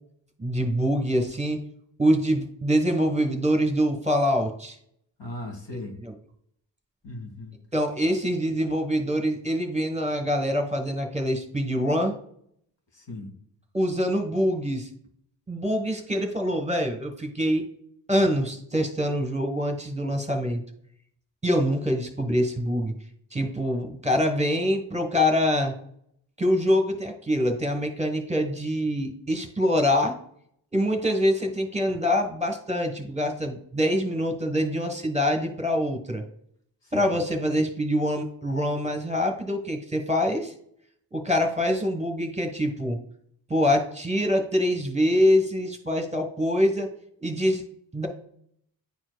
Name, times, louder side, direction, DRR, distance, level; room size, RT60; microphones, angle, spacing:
voice 1, 0.4-1.6 2.0-4.8 6.0-6.1 7.7-12.2 13.7-14.9 15.5-17.6 18.1-20.6 21.4-22.9 23.3-25.7 26.4-30.1 30.7-36.2 36.9-40.5 41.1-43.0 43.5-46.9 47.2-47.6 47.9-48.1, equal, 15° right, 5 dB, 1.3 m, -25 dB
voice 2, 5.2-6.0 7.0-7.6 12.9-13.3 36.8-37.1, left 2 dB, 65° left, 1 dB, 1.9 m, -38 dB
9.7 x 4.5 x 2.3 m, 0.66 s
cardioid pair, 40°, 47 cm